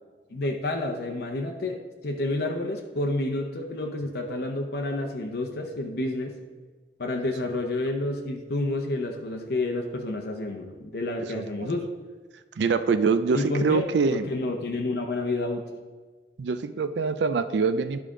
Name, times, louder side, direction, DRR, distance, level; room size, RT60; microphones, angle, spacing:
voice 1, 0.3-6.4 7.0-11.9 13.3-13.8 14.1-15.7, left 2 dB, 60° left, 2 dB, 0.7 m, -29 dB
voice 2, 11.2-11.7 12.6-14.3 16.4-18.0, right 5 dB, 75° right, 11 dB, 0.4 m, -25 dB
11.0 x 5.0 x 3.7 m, 1.4 s
head